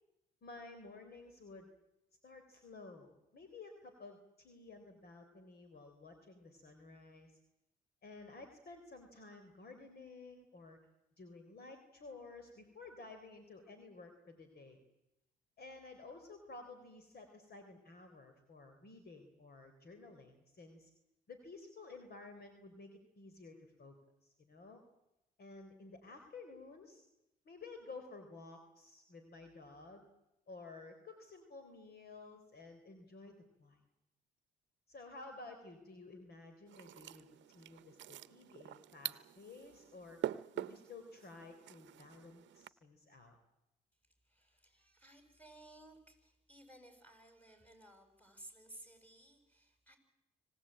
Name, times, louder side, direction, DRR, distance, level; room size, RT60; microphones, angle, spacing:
voice 1, 0.4-1.7 2.2-7.4 8.0-10.8 11.2-14.8 15.6-20.9 21.3-24.0 24.2-24.8 25.4-27.1 27.4-30.1 30.5-33.8 34.9-40.2 40.5-43.4, left 3 dB, 55° left, 7 dB, 3.8 m, -53 dB
sound 1, 36.7-42.7, right 12 dB, 70° right, 0.8 m, -46 dB
voice 2, 44.2-50.0, right 1 dB, 10° left, 5 dB, 7.1 m, -58 dB
25.5 x 18.0 x 8.9 m, 0.90 s
supercardioid pair, 65°, 20 cm